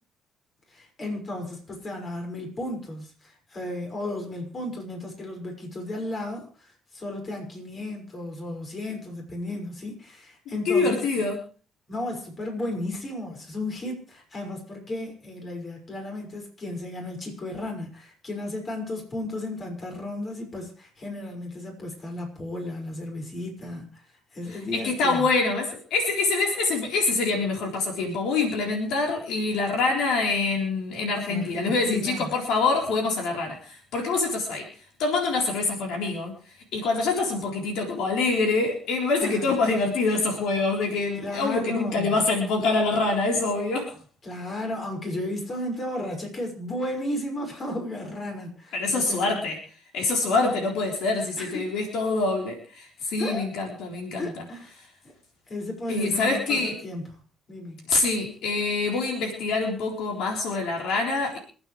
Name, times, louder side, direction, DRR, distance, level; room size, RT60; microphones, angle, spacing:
voice 1, 0.7-11.0 11.9-23.9 24.3-25.3 31.3-32.3 39.2-39.6 41.2-42.2 44.2-49.4 51.4-51.7 53.2-53.5 54.2-54.7 55.0-55.1 55.5-57.0 57.5-57.8, left 1 dB, 40° left, 2 dB, 5.9 m, -34 dB
voice 2, 10.7-11.4 24.5-34.7 35.0-36.4 36.7-44.0 48.7-49.6 49.9-54.5 54.7-54.9 55.9-56.8 57.9-61.4, left 3 dB, 80° left, 1 dB, 4.0 m, -25 dB
26.5 x 9.1 x 3.3 m, 0.37 s
cardioid pair, 90°, 0 cm